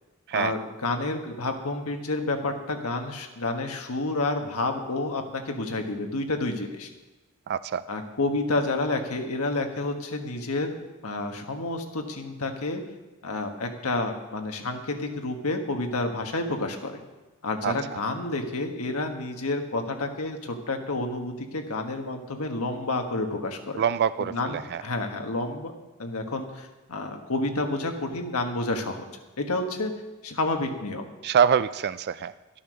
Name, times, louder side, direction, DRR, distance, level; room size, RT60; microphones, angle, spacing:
voice 1, 0.3-6.9 7.9-10.8 11.0-12.8 13.2-17.0 17.4-23.8 24.2-25.7 26.0-29.1 29.4-29.9 30.2-31.1, left 2 dB, 90° left, 4 dB, 1.4 m, -29 dB
voice 2, 7.5-7.8 17.6-17.7 23.8-24.8 31.2-32.3, right 8 dB, 50° right, 15 dB, 0.3 m, -25 dB
12.5 x 8.6 x 6.3 m, 1.1 s
head